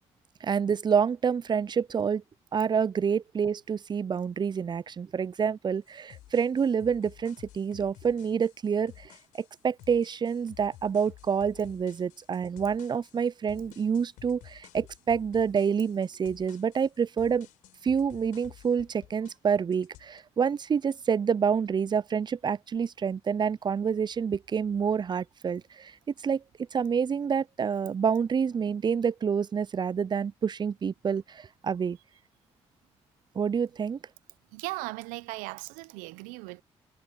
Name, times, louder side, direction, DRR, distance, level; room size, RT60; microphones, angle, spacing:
voice 1, 0.4-2.2 2.5-17.5 17.8-25.9 26.2-26.4 26.7-32.0 33.4-34.0, right 6 dB, 35° right, 0.3 m, -28 dB
sound 1, 5.9-19.4 19.7-20.2, left 14 dB, 80° left, 4.1 m, -53 dB
voice 2, 34.5-36.6, right 22 dB, 85° right, 0.8 m, -37 dB
hypercardioid pair, 45°, 13 cm